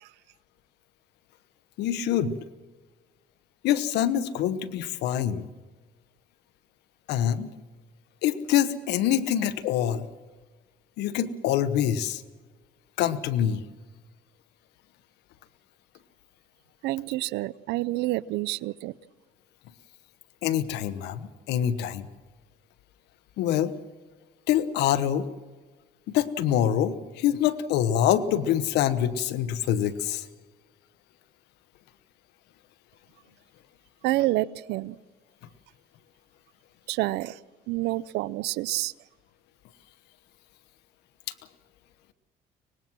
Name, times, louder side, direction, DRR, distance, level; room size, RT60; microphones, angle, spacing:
voice 1, 1.8-2.3 3.6-5.5 7.1-7.5 8.2-10.1 11.0-12.2 13.0-13.6 20.4-22.1 23.4-23.7 24.5-25.3 26.1-30.3, left 10 dB, 85° left, 13 dB, 1.2 m, -25 dB
voice 2, 16.8-18.9 34.0-34.9 36.9-37.3 37.7-38.9, right 18 dB, 85° right, 21 dB, 0.5 m, -28 dB
24.0 x 20.0 x 6.1 m, 1.3 s
cardioid pair, 110°, 17 cm